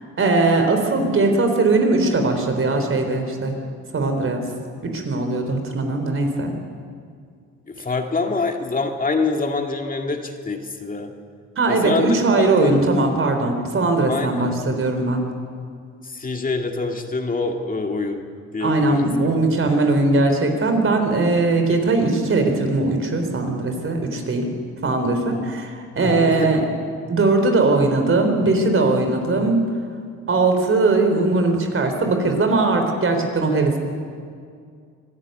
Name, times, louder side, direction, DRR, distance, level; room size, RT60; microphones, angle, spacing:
voice 1, 0.2-3.6 3.9-4.4 4.8-6.5 11.6-15.2 18.6-24.5 24.8-26.6 27.1-29.7 30.3-33.8, right 3 dB, 45° right, 5 dB, 3.9 m, -20 dB
voice 2, 7.7-11.1 11.7-12.8 14.1-14.5 16.0-18.3 18.5-19.1 19.5-19.7 25.3-25.4 26.0-26.5, left 3 dB, 30° left, 3 dB, 2.3 m, -25 dB
25.0 x 12.5 x 9.2 m, 2.2 s
cardioid pair, 90°, 30 cm